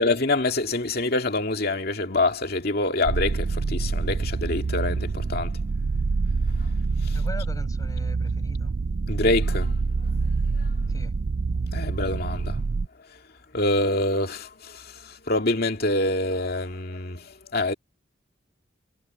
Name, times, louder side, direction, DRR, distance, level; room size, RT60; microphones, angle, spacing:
voice 1, 0.0-5.6 9.1-9.7 11.7-12.6 13.5-14.7 15.3-17.7, left 2 dB, 55° left, 2.4 m, -25 dB
sound 1, 3.0-12.9, right 4 dB, 50° right, 0.4 m, -26 dB
voice 2, 7.1-8.7 10.9-11.2, left 1 dB, 20° left, 6.2 m, -39 dB
head